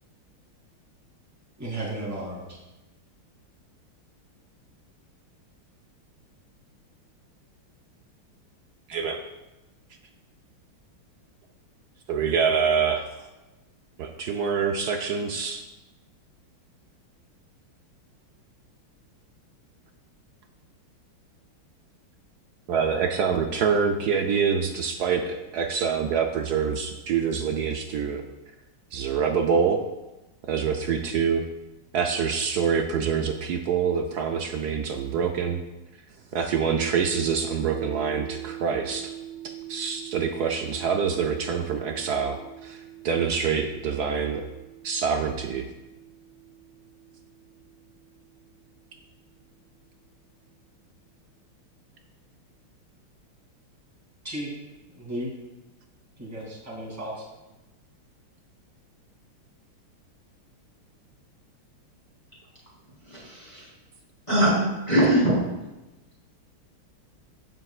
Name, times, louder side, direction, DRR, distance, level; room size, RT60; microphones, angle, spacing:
voice 1, 1.6-2.6 54.2-54.5 54.9-55.3 56.2-57.2, right 1 dB, 10° right, -6 dB, 2.8 m, -34 dB
voice 2, 8.9-9.2 12.1-13.0 14.0-15.6 22.7-28.2 28.9-29.8 30.5-31.4 31.9-35.6 36.3-39.1 39.7-42.8 43.0-44.4 44.8-45.6, right 6 dB, 70° right, 4 dB, 0.9 m, -25 dB
sound 1, 36.8-48.9, right 12 dB, 35° right, 2.2 m, -43 dB
voice 3, 63.1-63.7 64.3-65.4, right 1 dB, 20° left, -9 dB, 4.0 m, -22 dB
15.5 x 7.6 x 2.4 m, 1.0 s
omnidirectional pair, 2.3 m